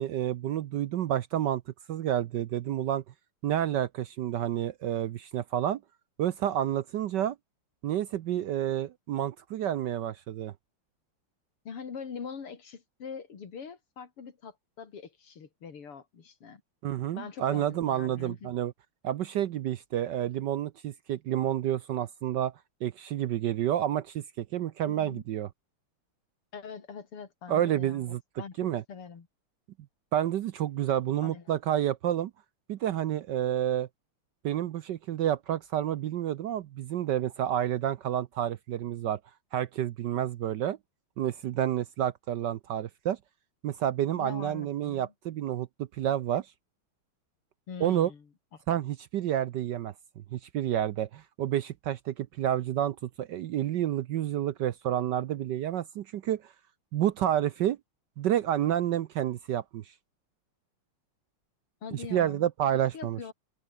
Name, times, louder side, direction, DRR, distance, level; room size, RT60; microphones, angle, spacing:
voice 1, 0.0-1.6 1.9-3.0 3.4-5.8 6.2-7.4 7.8-10.5 16.8-18.7 19.0-22.5 22.8-25.5 27.5-28.2 28.6-28.8 30.1-32.3 32.7-33.9 34.4-39.2 39.5-40.8 41.2-43.2 43.6-46.5 47.8-48.1 48.7-49.9 50.3-56.5 56.9-57.8 58.2-59.9 61.9-63.2, right 11 dB, 65° right, 1.1 m, -29 dB
voice 2, 11.7-16.6 17.1-18.5 24.9-25.2 26.5-28.6 28.9-29.3 31.2-31.6 44.2-45.1 47.7-48.3 48.5-48.6 61.8-62.5 62.9-63.3, left 6 dB, 80° left, 3.6 m, -43 dB
omnidirectional pair, 2.4 m